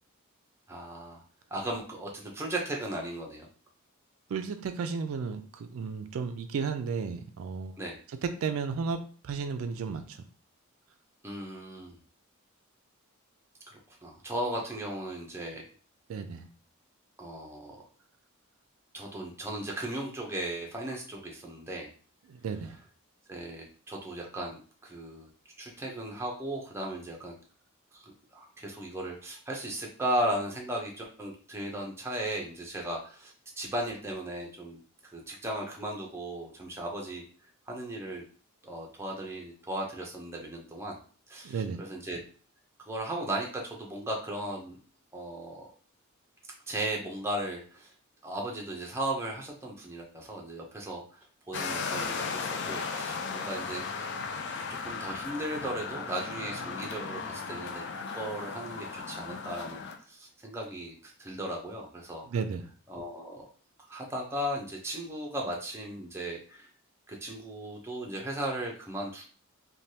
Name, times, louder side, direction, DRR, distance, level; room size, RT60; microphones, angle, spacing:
voice 1, 0.7-1.2 1.5-3.5 7.8-8.0 11.2-12.0 13.7-15.7 17.2-17.8 18.9-21.9 23.3-25.3 25.6-27.3 27.9-37.2 37.7-38.2 38.6-41.0 41.3-42.2 42.9-44.8 45.1-45.7 46.7-47.9 48.2-51.0 51.5-53.9 54.5-57.8 58.1-62.2 62.9-63.5 63.9-66.7 67.1-69.3, right 1 dB, 10° right, -1 dB, 0.5 m, -36 dB
voice 2, 4.3-7.8 8.2-10.2 16.1-16.5 22.3-22.8 41.4-41.8 62.2-62.7, right 5 dB, 70° right, 9 dB, 0.3 m, -33 dB
sound 1, 51.5-60.0, left 5 dB, 55° left, 0.4 m, -36 dB
3.2 x 2.2 x 2.7 m, 0.41 s
head